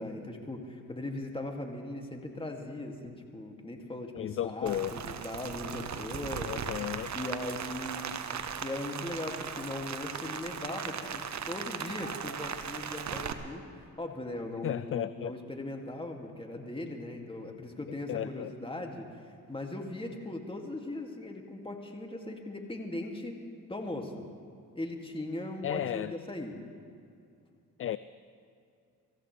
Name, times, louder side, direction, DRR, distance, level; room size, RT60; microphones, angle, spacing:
voice 1, 0.0-6.7 7.1-8.2 8.6-24.3 24.7-26.6, left 1 dB, 15° left, 2 dB, 2.6 m, -39 dB
voice 2, 4.1-4.9 6.5-7.1 14.6-15.3 18.1-18.5 25.6-26.1 27.8-28.0, left 11 dB, 35° left, 16 dB, 0.4 m, -33 dB
Rain, 4.7-13.3, right 7 dB, 45° right, 1.1 m, -38 dB
25.5 x 15.0 x 3.4 m, 2.4 s
hypercardioid pair, 50°, 38 cm